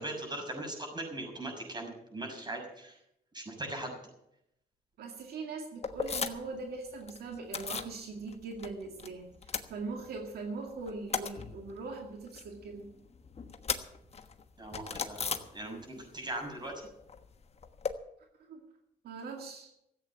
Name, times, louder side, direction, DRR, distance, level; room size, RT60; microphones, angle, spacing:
voice 1, 0.0-3.0 3.3-4.0 14.6-16.7, right 1 dB, 25° right, 2 dB, 6.4 m, -40 dB
voice 2, 5.0-9.3 9.7-12.9 18.5-18.6 19.0-19.7, right 3 dB, 85° right, 2 dB, 2.2 m, -41 dB
sound 1, 5.8-6.6 6.9-8.0 8.3-9.1 9.3-10.4 10.7-16.1 16.3-17.9, left 5 dB, 40° left, 1.2 m, -38 dB
15.0 x 8.4 x 8.5 m, 0.81 s
cardioid pair, 85°, 16 cm